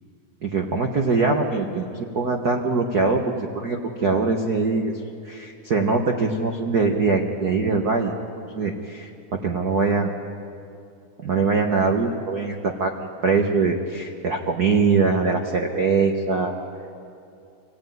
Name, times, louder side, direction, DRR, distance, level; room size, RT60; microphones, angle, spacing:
voice 1, 0.4-8.1 8.5-10.1 11.2-16.5, right 4 dB, 85° right, 3 dB, 0.8 m, -22 dB
26.5 x 16.5 x 9.4 m, 2.6 s
omnidirectional pair, 3.8 m